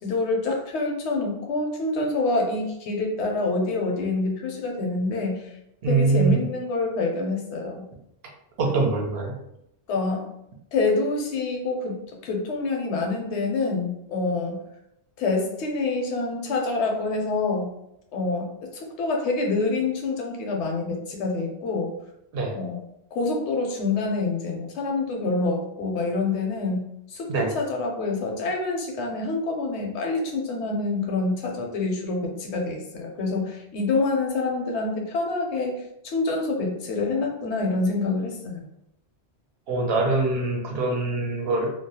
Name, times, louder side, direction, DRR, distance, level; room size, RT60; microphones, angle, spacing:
voice 1, 0.0-5.5 5.9-7.8 9.9-10.3 10.7-14.6 15.2-17.7 18.1-21.9 22.5-22.8 23.1-38.6, left 3 dB, 85° left, 1 dB, 0.9 m, -26 dB
voice 2, 5.8-6.4 8.6-9.3 22.3-22.6 27.3-27.5 39.7-41.7, right 3 dB, 70° right, 0 dB, 0.8 m, -23 dB
2.3 x 2.0 x 2.7 m, 0.80 s
omnidirectional pair, 1.1 m